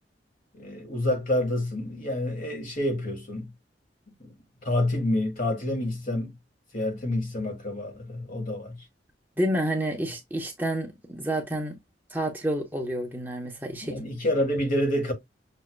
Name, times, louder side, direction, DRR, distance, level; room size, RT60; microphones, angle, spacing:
voice 1, 0.5-3.5 4.2-4.3 4.6-6.3 6.7-8.8 13.8-15.1, left 1 dB, 45° left, 1.6 m, -28 dB
voice 2, 9.4-11.8 12.1-14.0, right 1 dB, 10° right, 0.9 m, -29 dB
6.4 x 2.8 x 2.2 m
head